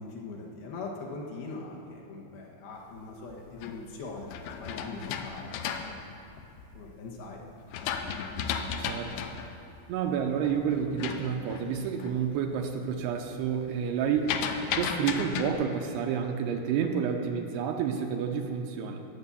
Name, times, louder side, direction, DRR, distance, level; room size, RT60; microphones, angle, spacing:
voice 1, 0.0-5.6 6.7-7.4, left 3 dB, 65° left, -2 dB, 3.0 m, -41 dB
sound 1, 3.1-6.9 7.4-12.2 12.6-13.0 13.3-15.5, left 7 dB, 80° left, 2.8 m, -35 dB
voice 2, 8.8-9.1 9.9-14.3 14.7-19.1, right 7 dB, 75° right, 3 dB, 2.7 m, -29 dB
19.0 x 8.0 x 7.0 m, 2.6 s
omnidirectional pair, 5.1 m